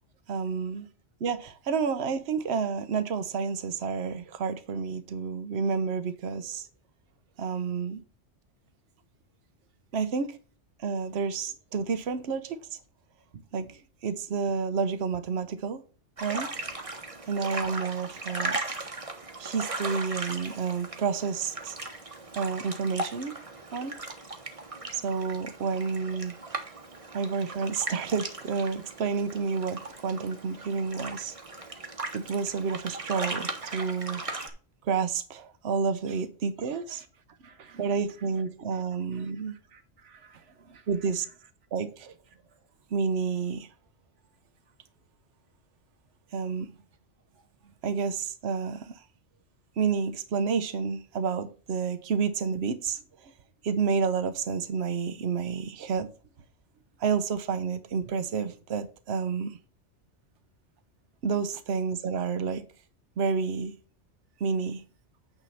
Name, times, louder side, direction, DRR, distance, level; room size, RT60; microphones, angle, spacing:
voice 1, 0.3-0.9 1.2-6.7 7.4-8.0 9.9-10.4 10.8-12.6 13.5-15.8 16.2-16.5 17.3-18.6 19.4-21.8 22.3-23.4 23.7-24.0 24.9-26.4 27.1-31.3 32.1-34.2 34.8-37.0 37.8-39.5 40.9-41.2 41.7-42.1 42.9-43.7 46.3-46.7 47.8-49.0 49.8-53.3 53.6-56.1 57.0-59.6 61.2-62.6 63.2-63.7 64.4-64.8, right 5 dB, 65° right, 1.1 m, -30 dB
sound 1, 16.2-34.5, right 2 dB, 30° right, 1.2 m, -38 dB
voice 2, 36.6-38.0 38.7-38.8 39.1-40.9 47.6-47.7, right 6 dB, 80° right, 1.3 m, -56 dB
9.1 x 3.7 x 5.5 m
omnidirectional pair, 1.2 m